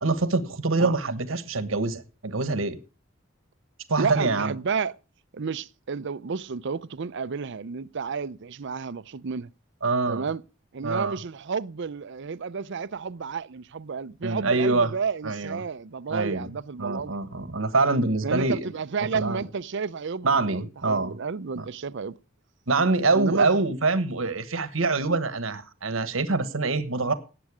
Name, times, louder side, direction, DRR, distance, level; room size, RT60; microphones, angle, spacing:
voice 1, 0.0-2.8 3.9-4.6 9.8-10.3 10.8-11.2 14.2-14.9 15.2-15.6 16.1-16.4 16.8-18.7 19.0-19.4 20.2-21.2 21.6-21.7 22.7-27.1, right 3 dB, 85° right, 1.3 m, -25 dB
voice 2, 4.0-5.0 5.3-9.5 10.1-10.4 10.7-17.1 18.2-22.1 23.1-23.6, right 5 dB, 65° right, 0.6 m, -31 dB
18.0 x 7.8 x 4.9 m
head